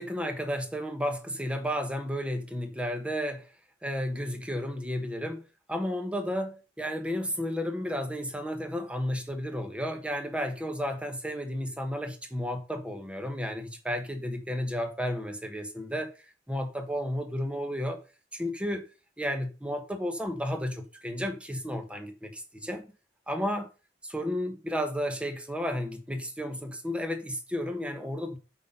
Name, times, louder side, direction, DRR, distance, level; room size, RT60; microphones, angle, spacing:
voice 1, 0.0-3.5 3.8-5.4 5.7-16.1 16.5-18.0 18.3-18.9 19.2-22.8 23.3-23.7 24.0-28.4, equal, 5° right, 1.2 m, -32 dB
8.3 x 4.1 x 5.5 m
head